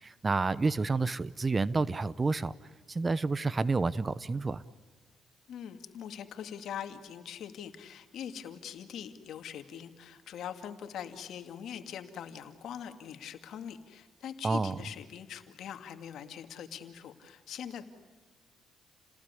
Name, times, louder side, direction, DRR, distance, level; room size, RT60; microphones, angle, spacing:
voice 1, 0.0-2.5 2.9-4.6 14.4-14.7, right 3 dB, 30° right, 18 dB, 0.8 m, -29 dB
voice 2, 5.5-17.8, left 9 dB, 75° left, 7 dB, 2.3 m, -42 dB
29.5 x 19.0 x 9.8 m, 1.3 s
cardioid pair, 90°, 0 cm